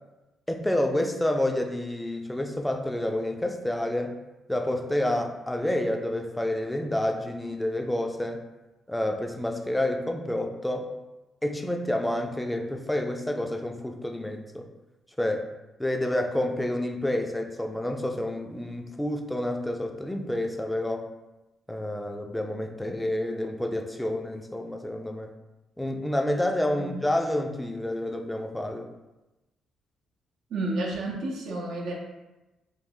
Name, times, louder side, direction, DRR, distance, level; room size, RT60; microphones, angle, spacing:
voice 1, 0.5-4.1 4.5-8.4 8.9-10.9 11.4-14.7 15.2-15.5 15.8-21.1 21.7-25.3 25.8-28.9, left 1 dB, 5° left, 4 dB, 0.4 m, -29 dB
voice 2, 30.5-31.9, right 2 dB, 75° right, -1 dB, 0.6 m, -31 dB
3.3 x 2.3 x 3.4 m, 1.0 s
cardioid pair, 90°, 0 cm